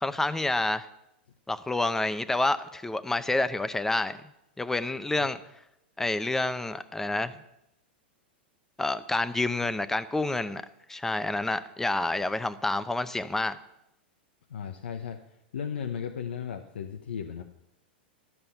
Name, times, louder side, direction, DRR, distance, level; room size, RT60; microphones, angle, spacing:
voice 1, 0.0-0.9 1.5-4.2 4.6-5.4 6.0-7.3 8.8-10.6 10.9-13.6, left 2 dB, 5° left, 13 dB, 0.6 m, -28 dB
voice 2, 14.5-17.4, left 7 dB, 90° left, 6 dB, 0.8 m, -36 dB
12.5 x 5.6 x 7.9 m, 0.84 s
hypercardioid pair, 125°, 6 cm